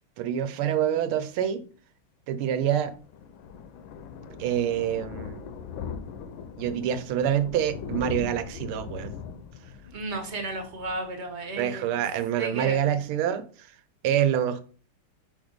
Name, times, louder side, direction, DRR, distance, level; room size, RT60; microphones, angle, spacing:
voice 1, 0.2-1.6 2.3-2.9 4.4-5.4 6.6-9.1 11.6-13.7 14.0-14.6, right 10 dB, 80° right, 11 dB, 1.5 m, -26 dB
Thunder, 2.4-11.8 12.1-12.4 12.7-12.8 13.0-13.1, left 6 dB, 75° left, 1.4 m, -40 dB
voice 2, 9.9-11.8 12.4-12.9, right 2 dB, 40° right, 4 dB, 1.1 m, -33 dB
5.4 x 3.6 x 5.0 m, 0.40 s
omnidirectional pair, 2.3 m